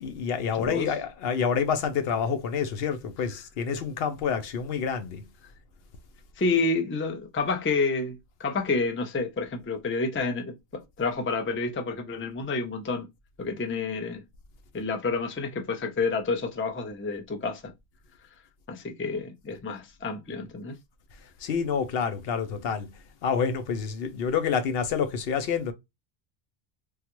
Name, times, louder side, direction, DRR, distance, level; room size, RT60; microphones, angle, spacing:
voice 1, 0.0-5.3 21.4-25.7, left 6 dB, 75° left, 0.8 m, -28 dB
voice 2, 0.6-0.9 6.4-13.1 13.4-14.2 14.7-17.7 18.7-20.8, left 3 dB, 20° left, 0.4 m, -29 dB
3.4 x 2.4 x 2.9 m
omnidirectional pair, 1.1 m